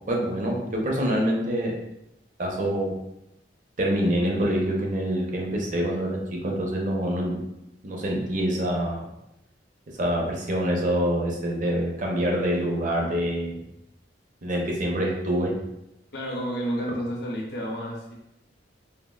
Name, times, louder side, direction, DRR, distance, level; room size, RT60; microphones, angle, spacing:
voice 1, 0.1-1.7 2.4-2.9 3.8-7.4 7.8-9.1 9.9-13.6 14.4-15.5, equal, 45° right, 0 dB, 0.6 m, -26 dB
voice 2, 16.1-18.1, equal, 60° left, -3 dB, 0.7 m, -30 dB
3.4 x 2.3 x 2.3 m, 0.87 s
head